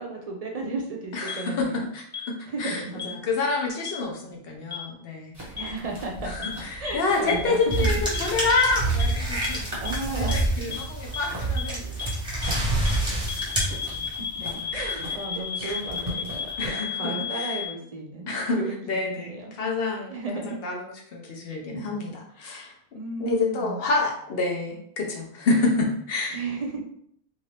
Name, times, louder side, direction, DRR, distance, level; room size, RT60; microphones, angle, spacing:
voice 1, 0.0-1.9 2.4-2.9 3.4-3.5 5.5-6.3 6.8-7.6 9.8-10.5 14.0-14.1 14.7-18.3 18.6-19.5 20.1-20.6 22.9-23.8 26.3-26.8, right 3 dB, 45° right, 0 dB, 0.5 m, -34 dB
voice 2, 1.1-2.3 2.6-2.8 3.2-5.3 6.3-9.7 10.2-11.8 12.6-13.4 13.7-14.1 14.4-15.0 15.6-15.7 16.6-17.6 18.3-18.6 18.8-19.3 19.6-20.2 20.4-20.8 21.1-22.7 23.2-26.4, left 3 dB, 65° left, 0 dB, 1.0 m, -28 dB
sound 1, 1.3-1.4 2.1-2.2 3.0-3.1 3.9-4.0 4.7-4.8 5.6-5.7 6.4-6.5 6.9-7.0 7.3-7.4 7.7-7.8 8.1-8.2 8.6-8.7 9.0-9.1 9.4-9.5 9.9-10.0 10.3-10.4 10.7-10.8 11.1-11.2 11.6-11.7 12.0-12.1 12.4-12.5 12.9-13.0 13.3-17.7, left 8 dB, 25° left, 0.4 m, -32 dB
sound 2, 5.3-16.7, right 1 dB, 25° right, 1.3 m, -41 dB
sound 3, 7.7-14.3, right 2 dB, 5° right, 0.8 m, -27 dB
2.7 x 2.6 x 3.3 m, 0.66 s
omnidirectional pair, 1.1 m